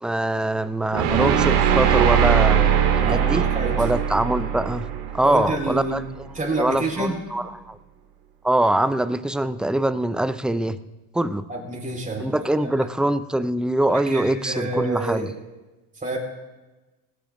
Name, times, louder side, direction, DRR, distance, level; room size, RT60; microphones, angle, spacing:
voice 1, 0.0-3.5 3.8-4.9 5.1-6.0 6.6-7.8 8.4-10.8 11.1-11.4 12.2-15.3, right 1 dB, ahead, 13 dB, 0.3 m, -23 dB
sound 1, 0.9-6.0, right 9 dB, 85° right, 2.3 m, -21 dB
voice 2, 3.0-3.7 5.2-6.0 6.3-7.1 11.5-12.7 13.9-15.3 15.9-16.2, right 2 dB, 15° right, 0 dB, 4.3 m, -28 dB
18.0 x 17.5 x 2.6 m, 1.1 s
supercardioid pair, 95°, 46 cm